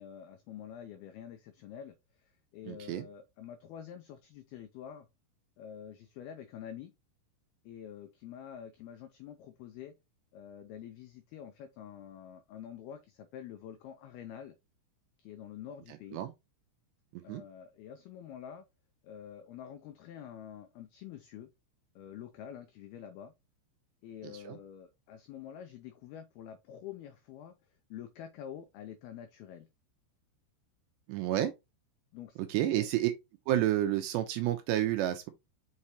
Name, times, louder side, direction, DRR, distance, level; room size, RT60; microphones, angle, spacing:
voice 1, 0.0-5.1 5.6-6.9 7.6-9.9 10.3-14.5 15.2-16.2 17.2-18.7 19.0-21.5 22.0-23.3 24.0-29.7 32.1-32.9, left 9 dB, 90° left, 2.2 m, -47 dB
voice 2, 2.7-3.1 15.9-16.3 17.1-17.4 24.2-24.6 31.1-31.5 32.5-33.1 33.5-35.3, right 13 dB, 80° right, 2.6 m, -30 dB
6.4 x 5.5 x 2.9 m
omnidirectional pair, 5.5 m